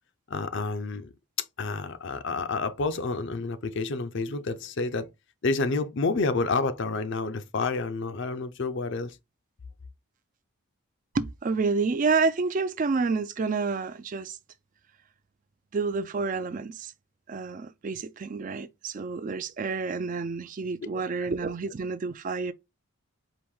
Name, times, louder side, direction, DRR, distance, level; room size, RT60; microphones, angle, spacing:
voice 1, 0.3-1.1 1.6-5.1 5.4-9.2 21.2-21.3, left 3 dB, 55° left, 0.5 m, -29 dB
voice 2, 11.1-14.4 15.7-16.9 17.3-22.5, right 4 dB, 35° right, 0.3 m, -29 dB
4.7 x 2.6 x 3.6 m
head